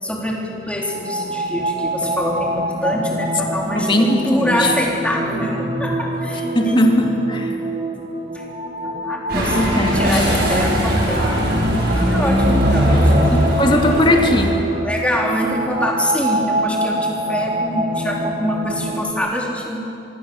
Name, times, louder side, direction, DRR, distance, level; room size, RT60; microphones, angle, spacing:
voice 1, 0.0-7.2 8.3-8.4 8.8-11.3 12.0-13.5 14.8-19.8, equal, 5° left, -2 dB, 3.8 m, -24 dB
sound 1, 0.7-19.1, right 1 dB, 30° right, 1.6 m, -26 dB
voice 2, 3.7-4.7 6.5-7.4 9.3-10.2 12.9-14.6, left 1 dB, 25° left, 2 dB, 2.6 m, -19 dB
sound 2, 9.3-14.4, equal, 55° right, 6.6 m, -18 dB
25.5 x 23.0 x 7.2 m, 2.7 s
head